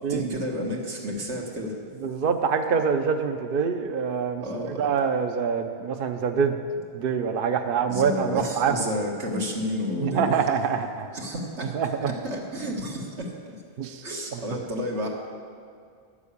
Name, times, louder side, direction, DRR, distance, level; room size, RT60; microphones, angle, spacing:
voice 1, 0.1-1.7 4.4-4.8 7.9-10.3 11.1-13.3 14.0-15.1, equal, 90° right, -1 dB, 2.0 m, -31 dB
voice 2, 2.0-4.4 4.8-6.6 6.9-8.9 10.0-11.1 11.7-12.1 13.8-14.0 14.3-14.4, right 6 dB, 60° right, 6 dB, 0.8 m, -25 dB
11.0 x 7.2 x 8.3 m, 2.2 s
omnidirectional pair, 1.1 m